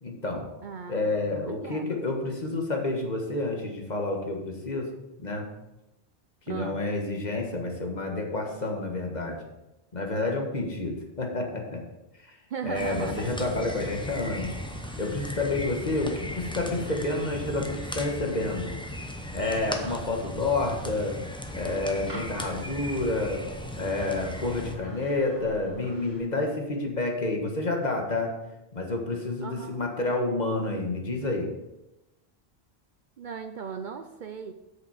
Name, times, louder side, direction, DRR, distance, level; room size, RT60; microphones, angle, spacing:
voice 1, 0.0-0.5 0.9-4.9 5.2-5.5 6.5-9.4 9.9-11.8 12.2-12.3 12.6-14.6 15.0-18.7 19.3-21.1 21.5-23.4 23.7-28.3 28.7-31.5, left 2 dB, 45° left, 1 dB, 1.5 m, -29 dB
voice 2, 0.6-2.0 6.5-6.8 12.5-13.3 29.4-29.8 33.2-34.5, right 6 dB, 55° right, 7 dB, 0.6 m, -37 dB
sound 1, 12.7-24.8, left 1 dB, 5° left, 0.7 m, -37 dB
sound 2, 13.5-26.2, right 1 dB, 40° right, 2.6 m, -47 dB
8.1 x 6.6 x 4.9 m, 0.96 s
omnidirectional pair, 1.1 m